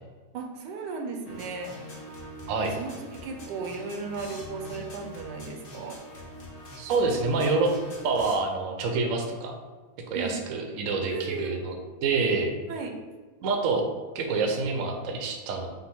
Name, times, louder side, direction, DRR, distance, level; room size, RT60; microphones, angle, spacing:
voice 1, 0.3-1.7 2.6-6.0 10.1-10.3 11.1-11.6 12.7-12.9, right 4 dB, 80° right, 3 dB, 1.2 m, -35 dB
sound 1, 1.2-8.4, left 1 dB, 45° left, 0.7 m, -43 dB
voice 2, 6.8-7.7 8.0-9.5 10.1-12.5 13.4-13.8 14.1-15.7, right 4 dB, 65° right, 2 dB, 0.8 m, -27 dB
5.7 x 2.1 x 3.5 m, 1.4 s
omnidirectional pair, 1.9 m